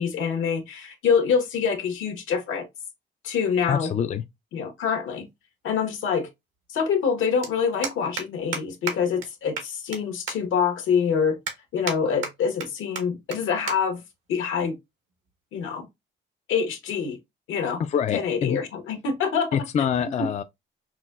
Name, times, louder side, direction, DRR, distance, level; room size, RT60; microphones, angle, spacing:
voice 1, 0.0-2.7 3.2-3.9 4.5-5.3 5.6-6.3 6.7-11.4 11.7-14.0 14.3-14.7 15.5-15.9 16.5-17.2 17.5-17.8 18.1-19.5 20.2-20.3, left 6 dB, 80° left, 1.1 m, -25 dB
voice 2, 3.7-4.2 17.8-18.6 19.5-20.4, left 8 dB, 35° left, 0.4 m, -25 dB
sound 1, 5.1-5.2 6.6-6.7 6.9-7.1 7.4-7.5 7.8-8.2 8.5-8.6 8.9-9.0 9.2-9.3 9.6-10.0 10.3-10.4 10.8-10.9 11.5-12.0 12.2-12.7 13.0-13.1 13.3-13.4 13.7-13.8 14.1-14.3 15.1-15.3, right 5 dB, 80° right, 1.3 m, -31 dB
5.8 x 2.2 x 2.3 m
cardioid pair, 90°, 20 cm